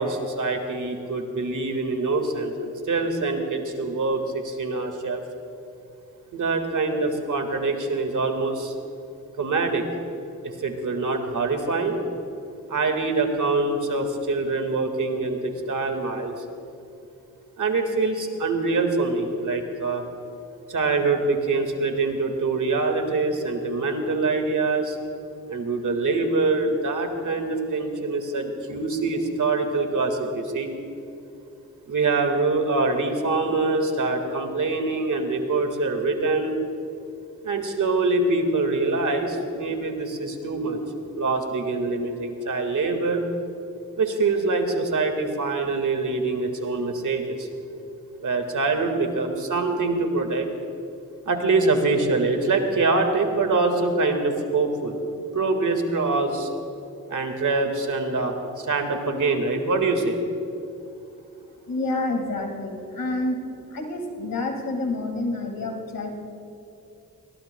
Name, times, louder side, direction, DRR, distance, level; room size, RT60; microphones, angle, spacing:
voice 1, 0.0-5.2 6.3-8.7 9.4-9.8 10.4-12.0 12.7-16.4 17.6-20.0 20.7-25.0 25.5-30.7 31.9-36.6 37.4-40.8 41.1-43.2 44.0-47.5 48.2-50.5 51.3-55.0 55.3-56.5 57.1-60.2, right 3 dB, 65° right, 5 dB, 1.9 m, -24 dB
voice 2, 61.6-63.4 63.7-66.1, left 2 dB, 80° left, 2 dB, 2.1 m, -28 dB
21.5 x 19.0 x 2.3 m, 2.7 s
cardioid pair, 50°, 33 cm